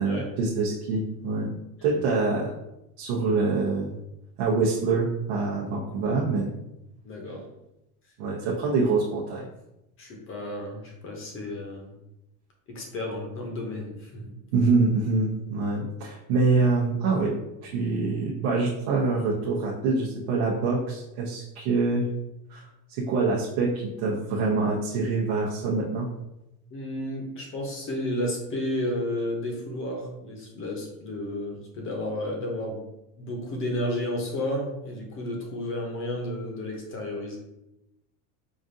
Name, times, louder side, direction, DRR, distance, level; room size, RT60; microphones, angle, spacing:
voice 1, 0.0-1.5 1.8-2.5 3.0-4.0 4.4-6.5 8.2-9.5 14.5-17.3 17.6-22.0 22.5-26.1, right 3 dB, 75° right, -5 dB, 0.9 m, -25 dB
voice 2, 7.0-7.5 8.4-8.5 10.0-11.9 12.7-14.3 26.7-32.8 33.2-37.4, left 1 dB, 30° left, 1 dB, 0.7 m, -32 dB
5.0 x 2.5 x 2.6 m, 0.88 s
cardioid pair, 155°, 41 cm